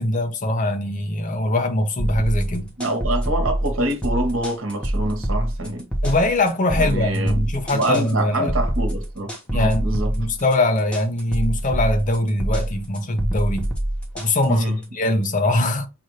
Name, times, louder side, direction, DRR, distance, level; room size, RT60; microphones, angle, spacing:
voice 1, 0.0-2.7 6.0-8.6 9.5-13.7 14.1-15.9, left 1 dB, 40° left, 0.8 m, -22 dB
sound 1, 2.0-14.8, right 1 dB, 5° left, 0.9 m, -25 dB
voice 2, 2.8-5.9 6.7-7.5 7.7-10.2 14.5-14.8, right 1 dB, 65° right, 1.3 m, -25 dB
5.8 x 2.6 x 3.1 m
head